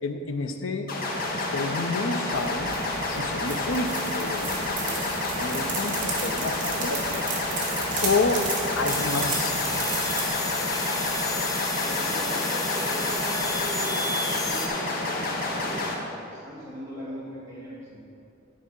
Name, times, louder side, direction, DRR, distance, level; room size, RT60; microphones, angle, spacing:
voice 1, 0.0-0.9 1.3-2.8 3.1-7.3 8.0-8.5 8.7-9.6, left 3 dB, 85° left, 6 dB, 0.7 m, -29 dB
sound 1, 0.9-15.9, left 2 dB, 50° left, 1.1 m, -29 dB
sound 2, 2.3-10.3, right 4 dB, 40° right, 1.6 m, -34 dB
sound 3, 8.9-14.7, left 3 dB, 20° left, 0.7 m, -31 dB
voice 2, 11.8-18.0, equal, 15° right, -9 dB, 2.0 m, -39 dB
11.0 x 5.0 x 5.4 m, 2.6 s
head